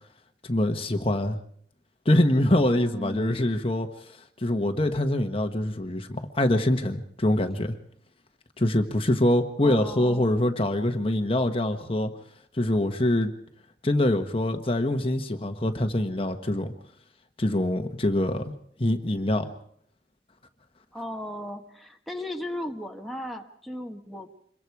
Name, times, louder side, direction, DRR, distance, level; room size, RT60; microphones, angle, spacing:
voice 1, 0.4-1.4 2.0-3.9 4.4-7.7 8.6-12.1 12.5-13.3 13.8-16.7 17.4-18.5 18.8-19.5, left 1 dB, 30° left, 6 dB, 1.3 m, -24 dB
voice 2, 2.8-3.3 9.6-10.3 20.9-24.3, left 1 dB, ahead, 1 dB, 1.5 m, -36 dB
26.5 x 22.5 x 4.8 m, 0.65 s
head